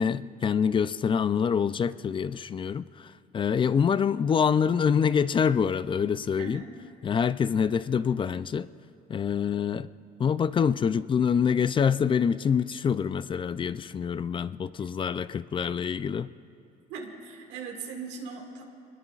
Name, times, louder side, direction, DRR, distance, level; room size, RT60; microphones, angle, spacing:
voice 1, 0.0-6.6 7.0-8.7 9.1-9.9 10.2-16.3, left 7 dB, 30° left, 15 dB, 0.4 m, -26 dB
voice 2, 6.4-6.7 16.9-18.6, right 5 dB, 85° right, 0 dB, 2.0 m, -39 dB
24.0 x 21.0 x 2.4 m, 2.7 s
cardioid pair, 110°, 17 cm